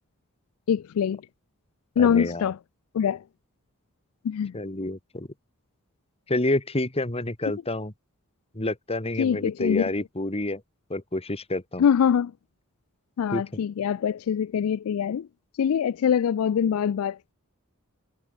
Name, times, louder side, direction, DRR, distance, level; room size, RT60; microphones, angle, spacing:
voice 1, 0.7-1.2 2.0-2.6 2.9-3.2 4.2-4.6 9.2-9.9 11.8-12.3 13.2-15.3 15.6-17.3, left 8 dB, 70° left, 0.3 m, -24 dB
voice 2, 2.0-2.5 4.5-5.3 6.3-7.9 8.5-10.6 10.9-11.8 13.3-13.4, left 2 dB, 30° left, 2.4 m, -28 dB
head